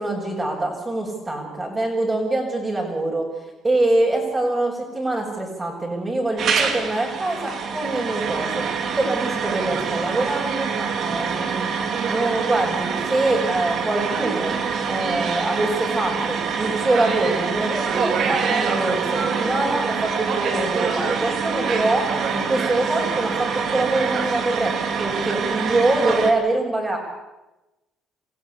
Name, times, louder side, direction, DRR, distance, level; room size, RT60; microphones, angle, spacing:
voice 1, 0.0-3.3 3.6-8.6 8.9-11.7 12.1-14.5 14.9-27.0, right 2 dB, 20° right, -4 dB, 6.3 m, -24 dB
sound 1, 6.4-26.3, right 6 dB, 55° right, 3.1 m, -25 dB
27.0 x 16.0 x 8.5 m, 1.0 s
cardioid pair, 105°, 0 cm